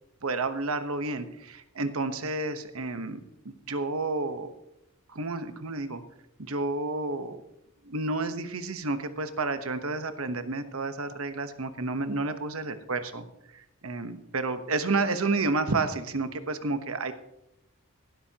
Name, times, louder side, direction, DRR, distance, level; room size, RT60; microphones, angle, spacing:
voice 1, 0.2-3.2 3.4-4.5 5.1-6.0 6.4-7.4 7.8-13.3 13.5-17.1, right 3 dB, 75° right, 9 dB, 1.1 m, -30 dB
17.5 x 12.5 x 2.9 m, 0.82 s
head